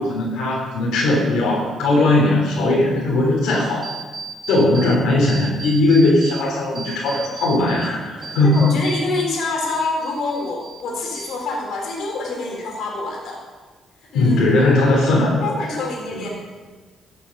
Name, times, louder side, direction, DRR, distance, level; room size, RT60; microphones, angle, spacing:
voice 1, 0.0-3.9 4.5-8.7 14.1-15.6 16.1-16.3, left 2 dB, 90° left, -4 dB, 3.3 m, -18 dB
sound 1, 3.8-5.0 5.3-6.4 6.8-9.4 9.7-10.8 11.1-11.8, right 4 dB, 35° right, 1.7 m, -35 dB
voice 2, 8.5-13.4 14.1-14.4 15.4-16.3, left 2 dB, 75° left, 0 dB, 3.8 m, -26 dB
15.5 x 7.3 x 6.4 m, 1.3 s
cardioid pair, 90°, 0 cm